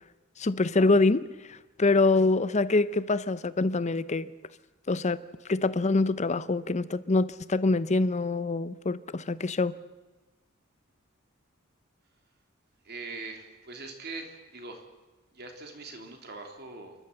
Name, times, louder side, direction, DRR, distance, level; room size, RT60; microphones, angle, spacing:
voice 1, 0.4-4.3 4.9-5.2 5.5-9.8, left 3 dB, 35° left, 0.7 m, -25 dB
voice 2, 12.8-14.8 15.3-16.9, right 3 dB, 50° right, 3.1 m, -42 dB
28.0 x 12.5 x 7.9 m
head